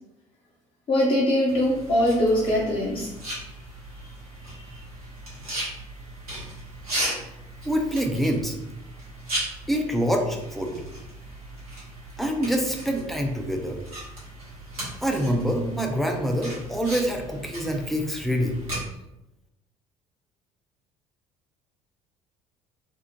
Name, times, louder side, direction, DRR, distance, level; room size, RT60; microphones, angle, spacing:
voice 1, 0.9-3.1 4.4-4.8, left 1 dB, 30° left, -5 dB, 0.8 m, -22 dB
sound 1, 1.5-18.8, right 1 dB, 85° right, 1.0 m, -37 dB
voice 2, 7.6-8.5 9.7-10.7 12.2-13.8 15.0-18.5, equal, ahead, 2 dB, 0.4 m, -26 dB
2.7 x 2.0 x 2.7 m, 0.91 s
figure-of-eight pair, 55°, 19 cm